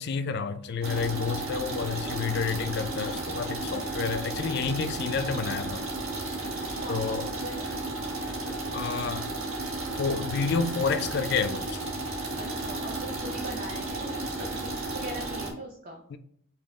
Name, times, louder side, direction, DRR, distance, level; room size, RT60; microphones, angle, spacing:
voice 1, 0.0-5.8 6.9-7.3 8.5-9.3 10.0-11.8 16.1-16.2, left 5 dB, 50° left, 0.3 m, -30 dB
sound 1, 0.8-15.5, right 2 dB, 70° right, 1.3 m, -33 dB
voice 2, 6.8-7.7 12.4-16.0, right 1 dB, 35° right, 0.5 m, -40 dB
5.2 x 2.4 x 3.6 m
head